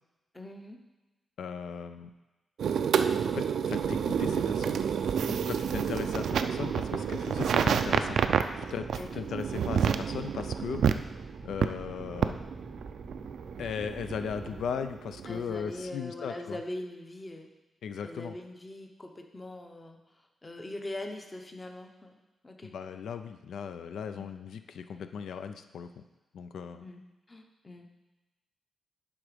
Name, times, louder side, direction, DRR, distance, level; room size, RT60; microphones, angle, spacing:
voice 1, 0.3-0.8 8.9-9.2 15.3-17.5 18.0-22.2 22.4-22.7 24.1-24.3 26.8-27.9, left 1 dB, 15° left, 4 dB, 0.7 m, -42 dB
voice 2, 1.4-2.1 3.3-4.8 5.3-8.2 8.6-10.9 11.4-12.3 13.6-16.6 17.8-18.3 22.6-26.0 26.3-26.9, left 7 dB, 90° left, 9 dB, 0.4 m, -37 dB
sound 1, 2.6-15.8, right 7 dB, 75° right, 0.3 m, -29 dB
sound 2, 3.7-14.7, right 3 dB, 20° right, 0.5 m, -46 dB
11.0 x 3.7 x 5.0 m, 1.1 s
wide cardioid pair, 165°, 0 cm